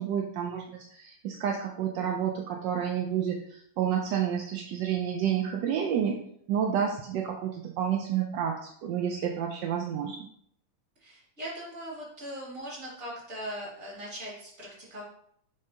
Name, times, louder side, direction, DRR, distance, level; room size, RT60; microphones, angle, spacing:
voice 1, 0.0-6.2 6.5-10.3, right 8 dB, 70° right, 2 dB, 1.1 m, -30 dB
voice 2, 11.0-15.0, equal, 35° right, -6 dB, 3.0 m, -40 dB
6.7 x 5.3 x 2.8 m, 0.67 s
omnidirectional pair, 2.4 m